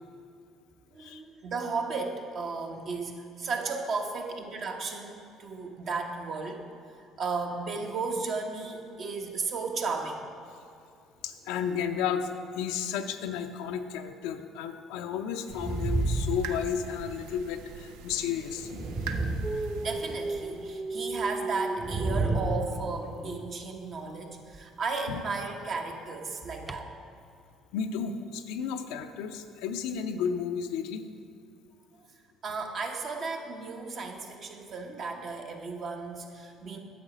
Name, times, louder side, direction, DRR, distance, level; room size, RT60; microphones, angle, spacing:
voice 1, 0.9-6.6 7.2-10.3 19.5-27.0 32.4-36.8, right 4 dB, 55° right, 2 dB, 1.1 m, -34 dB
voice 2, 11.2-12.3 12.6-18.9 25.1-25.2 27.7-31.0, left 7 dB, 75° left, 8 dB, 0.5 m, -33 dB
sound 1, 15.5-17.1 18.5-20.2 21.8-23.3, right 2 dB, 35° right, 1.0 m, -31 dB
sound 2, 15.5-20.8, right 6 dB, 75° right, 0.5 m, -44 dB
Dog, 19.4-23.4 24.4-24.6 26.7-26.8, right 2 dB, 10° right, 0.4 m, -36 dB
9.3 x 7.2 x 5.0 m, 2.4 s
hypercardioid pair, 60°, 0 cm